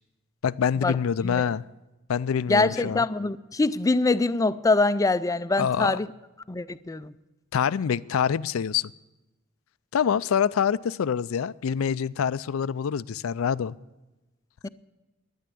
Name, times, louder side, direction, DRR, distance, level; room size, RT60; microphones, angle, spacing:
voice 1, 0.4-1.6 2.1-3.0 5.6-6.0 7.5-8.9 9.9-13.8, left 7 dB, 80° left, 18 dB, 0.4 m, -26 dB
voice 2, 2.5-6.1 6.5-7.1 14.6-14.7, left 3 dB, 15° left, 14 dB, 0.4 m, -24 dB
12.0 x 10.5 x 8.4 m, 1.1 s
head